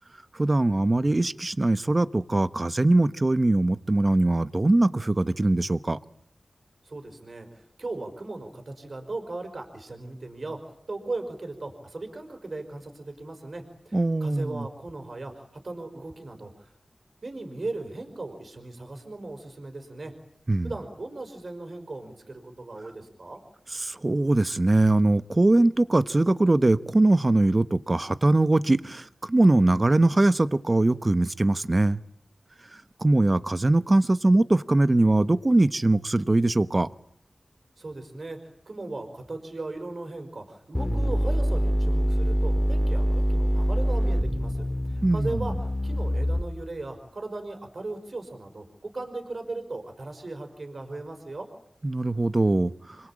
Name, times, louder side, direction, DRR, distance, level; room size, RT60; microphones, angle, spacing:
voice 1, 0.4-6.0 13.9-14.7 20.5-20.7 23.8-32.0 33.0-36.9 45.0-45.5 51.8-52.7, right 2 dB, 30° right, 1.1 m, -22 dB
voice 2, 6.8-16.7 17.2-20.1 20.6-23.4 37.8-45.5 45.8-51.5, right 2 dB, 55° right, 5.2 m, -37 dB
sound 1, 40.7-46.7, equal, 10° left, 2.7 m, -25 dB
27.5 x 23.5 x 8.8 m
wide cardioid pair, 85°, 0 cm